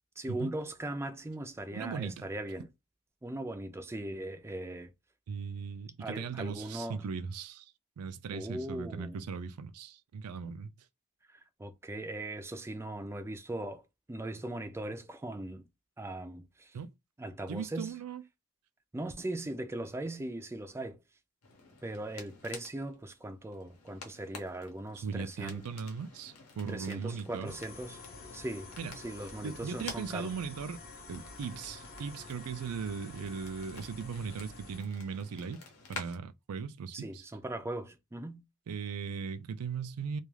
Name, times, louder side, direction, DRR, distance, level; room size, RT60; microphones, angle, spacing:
voice 1, 0.2-2.7 3.2-4.9 6.0-7.0 8.3-9.3 11.3-13.8 14.1-15.7 16.0-16.8 17.2-17.9 18.9-21.0 21.8-25.6 26.7-28.0 28.3-30.3 36.9-38.4, right 1 dB, 10° right, 0.3 m, -39 dB
voice 2, 1.7-2.3 5.3-7.7 8.0-10.7 16.7-16.9 17.5-18.2 25.0-27.5 28.8-28.9 29.4-30.8 31.1-35.6 35.9-37.2 38.7-40.2, right 5 dB, 85° right, 0.4 m, -38 dB
sound 1, 21.4-36.1, left 4 dB, 75° left, 0.8 m, -51 dB
sound 2, 27.5-34.8, left 3 dB, 40° left, 0.6 m, -49 dB
2.3 x 2.3 x 3.1 m
head